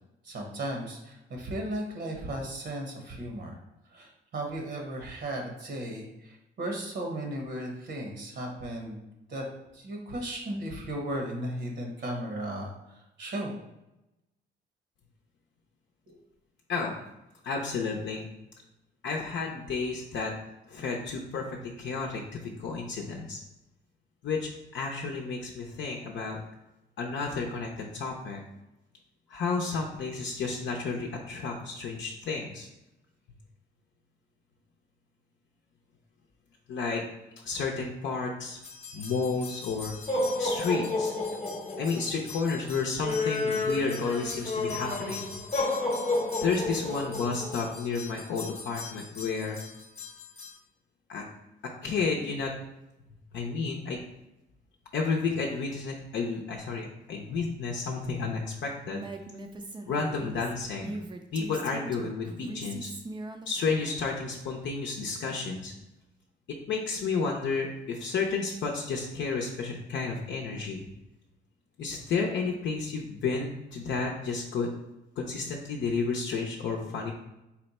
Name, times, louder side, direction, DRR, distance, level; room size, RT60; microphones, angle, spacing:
voice 1, 0.2-3.6 3.9-9.0 9.3-9.4 9.7-13.6 16.1-16.2, right 1 dB, 60° right, 1 dB, 1.0 m, -36 dB
voice 2, 17.4-18.3 19.0-20.3 20.7-23.4 24.2-26.4 27.0-28.4 29.3-32.7 36.7-37.0 37.4-38.6 38.9-40.0 40.4-41.1 41.8-45.3 46.4-49.6 51.1-51.2 51.8-52.5 53.3-54.0 54.9-59.0 59.9-61.0 61.3-62.9 63.5-65.7 66.7-70.9 71.8-74.7 75.2-77.1, left 4 dB, 65° left, 0 dB, 0.6 m, -31 dB
sound 1, 38.6-50.5, left 2 dB, 30° left, 0.9 m, -32 dB
Female speech woman speaking, 58.9-64.0, right 2 dB, 25° right, 0.4 m, -41 dB
4.2 x 2.1 x 4.1 m, 0.93 s
cardioid pair, 90°, 20 cm